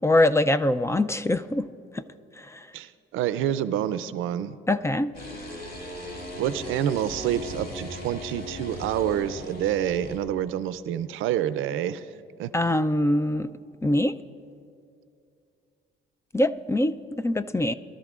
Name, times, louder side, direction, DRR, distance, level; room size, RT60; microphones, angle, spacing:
voice 1, 0.0-1.7 1.9-2.0 2.4-2.7 4.7-5.1 12.5-13.5 13.8-14.2 16.3-17.7, left 1 dB, 15° left, 12 dB, 0.3 m, -23 dB
voice 2, 2.7-4.5 6.4-12.1 12.4-12.5, right 10 dB, 85° right, 14 dB, 0.5 m, -27 dB
sound 1, 5.1-10.2, equal, 55° left, 3.6 m, -38 dB
22.5 x 12.5 x 2.4 m, 2.5 s
cardioid pair, 90°, 20 cm